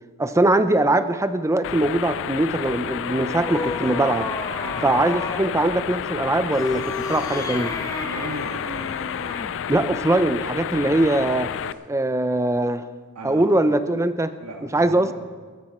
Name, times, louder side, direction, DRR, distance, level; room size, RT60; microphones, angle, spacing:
voice 1, 0.2-4.3 4.8-7.8 9.7-11.5 11.9-12.9 13.2-14.3 14.7-15.1, right 1 dB, 15° right, 11 dB, 0.5 m, -21 dB
sound 1, 1.6-11.7, left 9 dB, 60° left, 0.4 m, -30 dB
sound 2, 2.5-5.5 6.4-9.6, left 2 dB, 15° left, 1.1 m, -32 dB
voice 2, 4.6-5.1 8.0-8.9 11.4-11.5 13.2-13.6 14.4-15.1, right 2 dB, 80° right, 2 dB, 1.9 m, -37 dB
14.5 x 14.5 x 4.3 m, 1.6 s
head